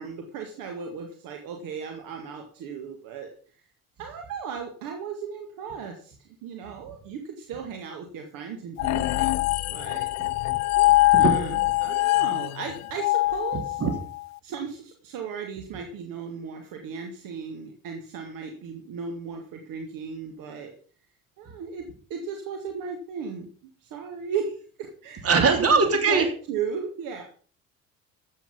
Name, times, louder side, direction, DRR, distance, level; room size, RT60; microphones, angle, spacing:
voice 1, 0.0-3.3 4.0-10.1 10.8-13.8 14.4-20.7 21.4-23.5 23.8-25.7 26.1-27.2, right 6 dB, 55° right, 3 dB, 2.1 m, -36 dB
sound 1, 8.8-14.2, left 18 dB, 40° left, 0.5 m, -23 dB
voice 2, 25.2-26.3, right 4 dB, 35° right, 6 dB, 3.0 m, -20 dB
14.0 x 8.4 x 5.3 m, 0.43 s
figure-of-eight pair, 55°, 41 cm